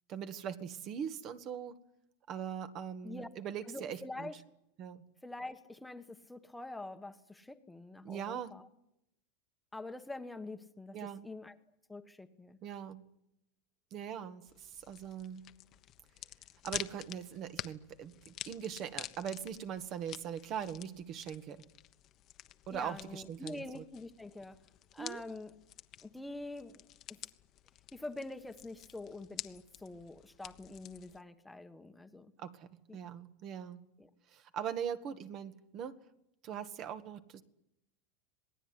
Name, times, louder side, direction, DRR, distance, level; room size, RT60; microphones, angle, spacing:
voice 1, 0.1-1.8 2.3-4.3 4.8-5.0 8.0-8.5 10.9-11.3 12.6-13.0 13.9-15.4 16.6-21.6 22.7-23.8 25.0-25.2 32.4-33.9 34.3-36.0 36.4-37.4, right 8 dB, 40° right, 11 dB, 1.8 m, -41 dB
voice 2, 3.7-4.3 5.2-8.7 9.7-11.6 11.9-12.6 22.7-24.6 24.9-25.5 26.0-27.2 27.9-32.3 32.9-33.0 34.0-34.1, left 2 dB, 5° left, 8 dB, 1.4 m, -46 dB
sound 1, 14.5-31.2, left 13 dB, 40° left, 1.2 m, -49 dB
26.5 x 19.5 x 9.9 m, 0.85 s
supercardioid pair, 140°, 0 cm